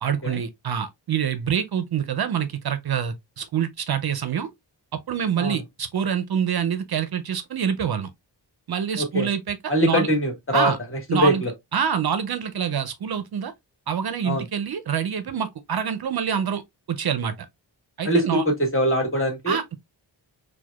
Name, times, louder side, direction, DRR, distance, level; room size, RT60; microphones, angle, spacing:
voice 1, 0.0-4.5 4.9-8.1 8.7-10.1 10.5-10.8 11.1-11.4 11.7-13.5 13.9-16.6 16.9-17.3 18.0-18.4 19.5-19.8, right 8 dB, 55° right, 0.5 m, -26 dB
voice 2, 9.0-9.3 9.7-10.7 11.1-11.5 14.2-14.4 18.0-19.6, equal, 30° left, 1.5 m, -22 dB
4.5 x 2.2 x 2.2 m
wide cardioid pair, 90°, 45 cm